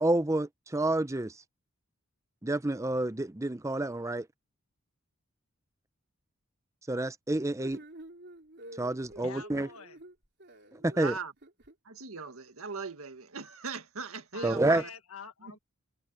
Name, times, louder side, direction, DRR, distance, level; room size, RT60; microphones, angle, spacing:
voice 1, 0.0-1.4 2.4-4.3 6.9-7.8 8.8-9.7 10.7-11.2 14.4-14.8, right 2 dB, 15° right, 0.6 m, -29 dB
sound 1, 7.6-11.7, right 1 dB, 55° right, 4.5 m, -49 dB
voice 2, 9.2-10.0 14.3-15.6, left 5 dB, 85° left, 1.7 m, -47 dB
voice 3, 10.9-11.3 11.9-14.9 15.4-15.6, right 4 dB, 80° right, 1.8 m, -39 dB
head